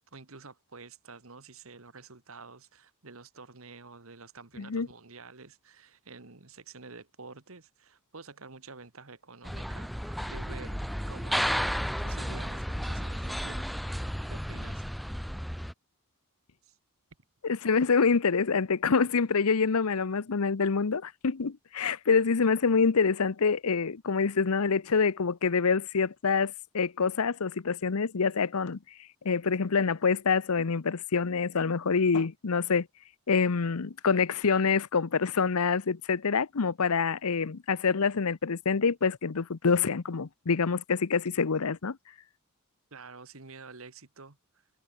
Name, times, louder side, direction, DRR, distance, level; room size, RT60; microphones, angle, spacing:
voice 1, 0.1-10.8 11.1-11.7 12.0-14.0 14.3-14.8 16.6-16.8 42.9-44.4, right 4 dB, 65° right, 1.7 m, -49 dB
voice 2, 4.6-4.9 17.4-28.8 29.2-32.9 33.3-42.0, left 5 dB, 80° left, 0.8 m, -26 dB
sound 1, 9.4-15.7, equal, ahead, 0.3 m, -33 dB
head